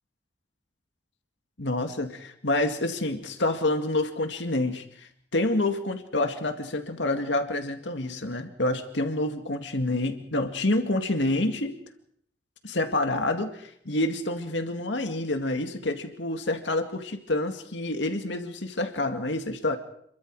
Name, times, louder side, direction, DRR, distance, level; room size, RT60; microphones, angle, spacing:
voice 1, 1.6-11.8 12.6-19.8, left 2 dB, 85° left, 6 dB, 2.1 m, -28 dB
27.5 x 23.0 x 4.8 m, 0.67 s
head